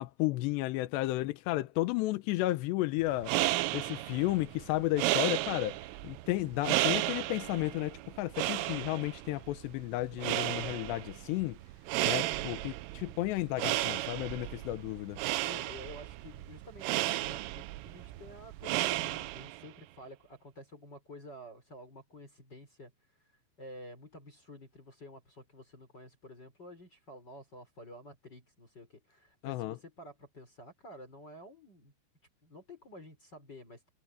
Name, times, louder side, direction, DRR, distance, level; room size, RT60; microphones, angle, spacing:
voice 1, 0.0-3.3 3.7-5.8 6.0-11.6 12.0-15.2 29.4-29.8, left 17 dB, 75° left, 2.7 m, -33 dB
sound 1, 3.0-19.7, right 18 dB, 85° right, 3.4 m, -34 dB
voice 2, 12.0-12.6 15.4-22.9 23.6-31.9 32.4-33.9, left 1 dB, 20° left, 4.8 m, -51 dB
omnidirectional pair, 5.7 m